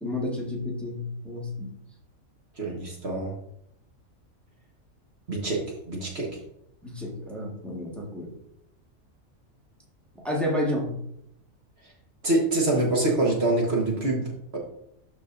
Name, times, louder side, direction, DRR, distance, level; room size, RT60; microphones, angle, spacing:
voice 1, 0.0-1.7 6.8-8.3 10.2-11.0, left 1 dB, ahead, -3 dB, 1.6 m, -30 dB
voice 2, 2.6-3.3 5.3-5.6 5.9-6.3 12.2-14.2, right 2 dB, 55° right, -2 dB, 1.6 m, -25 dB
12.0 x 4.8 x 2.6 m, 0.75 s
omnidirectional pair, 1.4 m